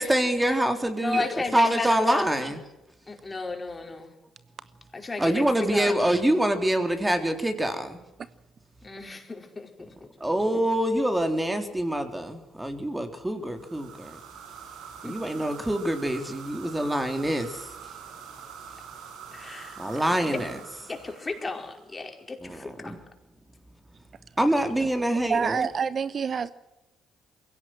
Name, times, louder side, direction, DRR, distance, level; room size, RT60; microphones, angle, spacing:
voice 1, 0.0-1.2 1.5-2.6 5.2-8.0 10.2-14.2 15.0-17.7 19.8-20.6 22.4-23.0 24.4-25.7, right 1 dB, 10° right, 3.7 m, -25 dB
voice 2, 1.0-2.3 3.1-4.1 4.9-5.9 8.8-9.7 15.0-15.2 19.3-19.8 20.2-20.4 20.9-22.9, left 3 dB, 30° left, 5.1 m, -33 dB
sound 1, 13.5-22.0, right 7 dB, 75° right, 5.8 m, -45 dB
voice 3, 25.2-26.5, right 6 dB, 50° right, 0.9 m, -27 dB
22.5 x 17.0 x 7.8 m
hypercardioid pair, 55°, 0 cm